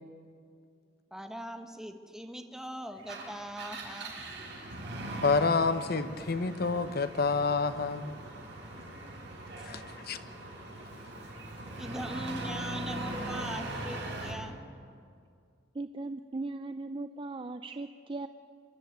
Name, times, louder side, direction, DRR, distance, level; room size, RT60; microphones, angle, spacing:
voice 1, 1.1-4.1 9.5-9.7 11.8-14.6, equal, 5° right, 5 dB, 1.3 m, -41 dB
Engine, 3.0-14.4, right 1 dB, 70° right, 5.2 m, -40 dB
voice 2, 5.2-8.1 9.6-10.2, left 4 dB, 55° left, 11 dB, 0.9 m, -28 dB
voice 3, 15.7-18.3, right 2 dB, 30° right, 9 dB, 0.5 m, -38 dB
25.5 x 11.5 x 9.2 m, 2.3 s
head